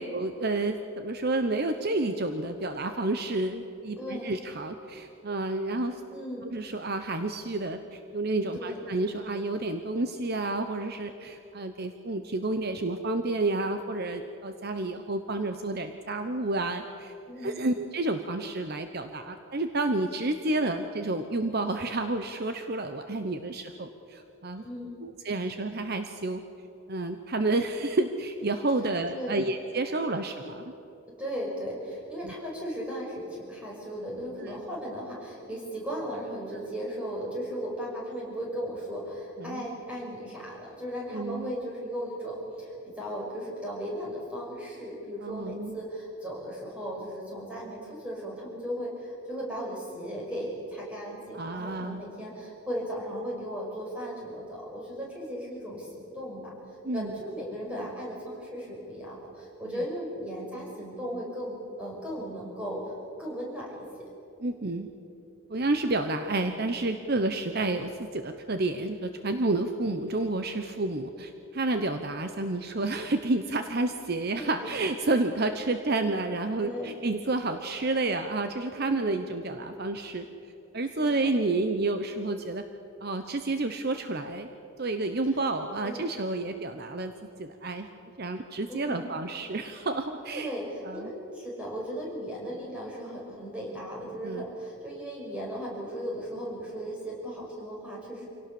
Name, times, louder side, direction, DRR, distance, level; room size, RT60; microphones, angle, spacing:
voice 1, 0.0-6.0 6.5-24.6 25.0-26.4 26.9-30.7 32.2-32.3 34.4-34.6 39.4-39.7 41.1-41.5 45.2-45.8 51.3-52.0 56.8-57.2 64.4-64.9 65.5-80.2 80.7-82.6 83.0-84.5 84.8-87.1 87.4-87.9 88.2-90.5 90.9-91.1 94.2-94.4, right 2 dB, 45° right, 7 dB, 0.9 m, -30 dB
voice 2, 4.0-4.4 6.1-6.4 8.5-8.8 17.3-17.6 24.5-25.0 29.1-29.4 31.2-56.5 56.9-63.8 74.4-74.7 76.6-77.0 78.8-79.2 80.9-81.3 85.8-86.0 88.7-89.1 90.3-98.3, equal, 5° right, -4 dB, 5.9 m, -36 dB
26.0 x 17.5 x 7.0 m, 2.9 s
head